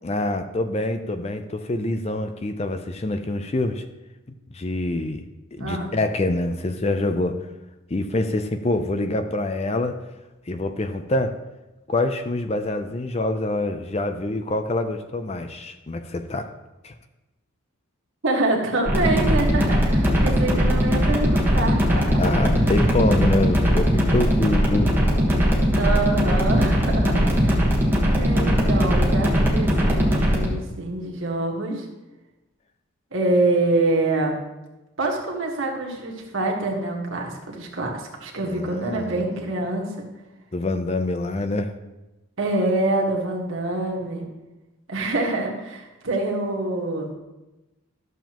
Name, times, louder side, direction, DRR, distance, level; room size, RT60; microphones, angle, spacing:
voice 1, 0.0-3.8 4.5-5.2 5.5-7.4 7.9-10.0 10.5-11.4 11.9-16.5 16.8-16.9 22.2-24.9 38.4-39.3 40.5-41.7, left 2 dB, 30° left, 8 dB, 0.5 m, -25 dB
voice 2, 5.6-5.9 18.2-22.3 25.8-27.7 28.1-31.8 33.1-34.4 35.0-40.1 42.4-44.3 44.9-47.1, right 2 dB, 65° right, 0 dB, 1.6 m, -26 dB
sound 1, 18.9-30.5, equal, 10° right, 1.3 m, -20 dB
12.0 x 7.1 x 3.0 m, 1.0 s
head